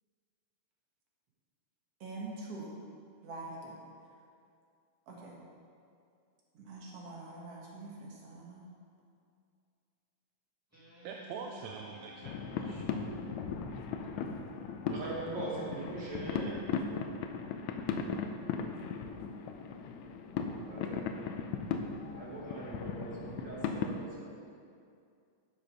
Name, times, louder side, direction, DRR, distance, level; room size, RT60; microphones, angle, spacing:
voice 1, 2.0-2.7 3.2-3.8 5.1-5.4 6.5-8.7 14.2-14.5 16.8-16.9, right 2 dB, 60° right, -3 dB, 2.3 m, -45 dB
Guitar, 10.7-15.5, equal, 5° right, 1.7 m, -55 dB
voice 2, 11.0-13.0, right 5 dB, 80° right, 1 dB, 1.9 m, -45 dB
sound 1, 12.2-24.1, left 6 dB, 80° left, 1.9 m, -37 dB
voice 3, 14.9-16.6 20.6-21.0 22.1-24.3, right 2 dB, 40° right, -6 dB, 2.6 m, -41 dB
10.5 x 7.2 x 5.2 m, 2.4 s
omnidirectional pair, 3.4 m